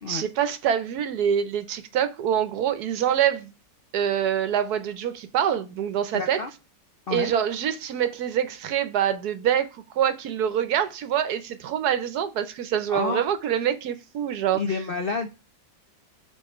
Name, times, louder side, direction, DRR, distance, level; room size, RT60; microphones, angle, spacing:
voice 1, 0.1-3.5 3.9-6.4 7.1-14.6, right 9 dB, 70° right, 1.1 m, -25 dB
voice 2, 6.1-6.5 7.1-7.3 12.9-13.3 14.5-15.3, left 4 dB, 75° left, 0.5 m, -29 dB
5.4 x 4.0 x 4.8 m
omnidirectional pair, 1.9 m